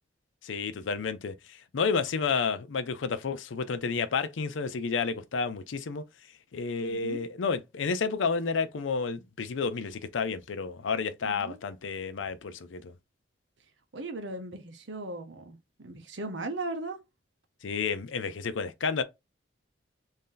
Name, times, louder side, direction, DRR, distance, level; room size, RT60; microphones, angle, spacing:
voice 1, 0.4-1.3 1.7-6.0 6.5-12.9 17.6-19.0, left 5 dB, 85° left, 0.5 m, -30 dB
voice 2, 6.9-7.2 11.2-11.6 13.9-17.0, right 2 dB, 70° right, 0.8 m, -38 dB
3.2 x 2.7 x 3.8 m
head